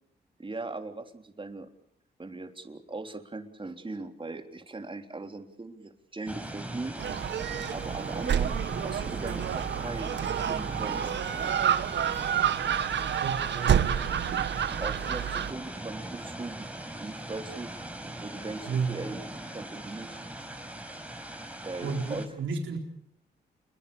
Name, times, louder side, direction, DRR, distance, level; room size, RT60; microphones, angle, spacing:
voice 1, 0.4-1.7 2.2-7.0 7.7-8.6 8.8-11.1 14.8-16.7 17.0-17.7 18.0-19.2 19.5-20.2 21.6-22.3, right 3 dB, 25° right, 6 dB, 3.6 m, -39 dB
sound 1, 6.3-22.3, right 1 dB, 5° right, 5.3 m, -40 dB
Gull seagull, 7.0-15.5, right 9 dB, 70° right, 1.3 m, -29 dB
voice 2, 13.2-14.2 18.7-19.0 21.8-22.8, right 5 dB, 85° right, 3 dB, 4.0 m, -32 dB
29.0 x 22.5 x 7.0 m, 0.73 s
cardioid pair, 70°, 19 cm